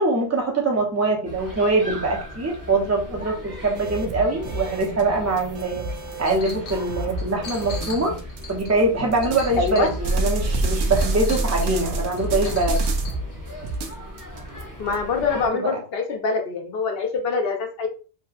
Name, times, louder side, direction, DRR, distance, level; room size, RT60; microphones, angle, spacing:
voice 1, 0.0-5.8 6.2-8.2 8.5-12.9 15.5-15.7, right 2 dB, 20° right, 0 dB, 0.5 m, -23 dB
sound 1, 1.2-15.5, equal, 20° left, 0.7 m, -38 dB
sound 2, 3.8-8.6 9.1-13.3 13.6-14.9, right 2 dB, 80° right, 0.9 m, -28 dB
Chink clink, 6.2-6.8 7.2-10.3 10.9-11.8 12.2-13.2, left 4 dB, 90° left, 0.9 m, -40 dB
voice 2, 9.6-9.9 14.8-17.9, left 5 dB, 65° left, 4 dB, 0.8 m, -24 dB
2.8 x 2.7 x 2.4 m, 0.36 s
omnidirectional pair, 1.1 m